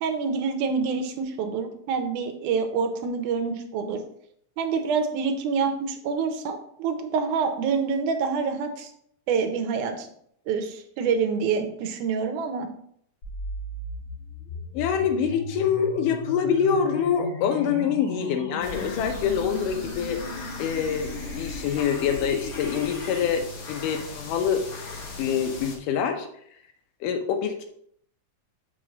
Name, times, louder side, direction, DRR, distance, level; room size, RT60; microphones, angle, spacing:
voice 1, 0.0-4.0 4.6-8.9 9.3-10.1 10.5-12.7, right 5 dB, 80° right, 5 dB, 2.3 m, -27 dB
sound 1, 13.2-23.2, left 2 dB, 45° left, 2.6 m, -37 dB
voice 2, 14.7-20.2 20.6-24.7 25.2-26.3 27.0-27.7, left 7 dB, 85° left, 6 dB, 2.4 m, -25 dB
sound 2, 18.6-25.8, left 3 dB, 65° left, 1.3 m, -38 dB
6.5 x 5.4 x 3.9 m, 0.69 s
omnidirectional pair, 3.6 m